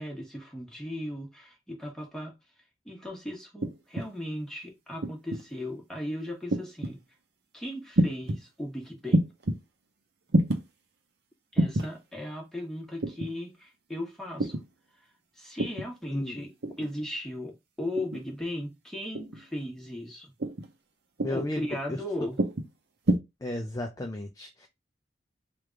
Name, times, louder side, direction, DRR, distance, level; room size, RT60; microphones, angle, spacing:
voice 1, 0.0-2.3 2.8-7.0 7.5-9.2 11.5-14.6 15.4-16.5 16.8-20.3 21.3-22.4, left 1 dB, 5° left, 1.3 m, -37 dB
sound 1, 3.6-4.1 5.0-5.4 6.5-7.0 8.0-8.4 9.1-9.6 10.3-10.6 11.6-11.9 13.0-13.3 14.4-14.7 15.6-15.9 16.6-16.9 18.0-18.3 19.1-19.5 20.4-20.7 21.2-21.5 22.4-22.7 23.1-23.2, right 1 dB, 65° right, 0.7 m, -27 dB
voice 2, 16.1-16.4 21.2-22.0 23.4-24.7, left 1 dB, 20° left, 0.4 m, -34 dB
3.4 x 2.5 x 4.4 m
head